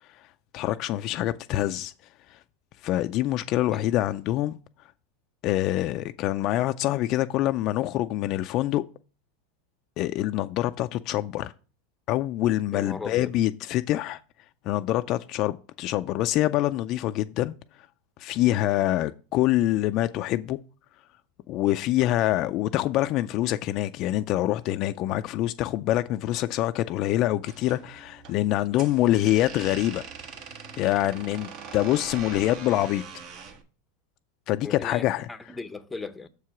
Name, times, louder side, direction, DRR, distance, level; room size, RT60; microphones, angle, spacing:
voice 1, 0.5-1.9 2.3-2.4 2.8-4.6 5.4-8.8 10.0-11.5 12.1-14.2 14.6-17.5 18.2-20.6 21.5-30.0 30.8-33.0 34.5-35.3, left 14 dB, 45° left, 0.4 m, -25 dB
voice 2, 12.7-13.3 34.6-36.3, left 3 dB, 10° left, 0.6 m, -37 dB
sound 1, 27.4-33.6, right 6 dB, 50° right, 1.1 m, -42 dB
6.7 x 4.7 x 5.7 m
supercardioid pair, 125°, 0 cm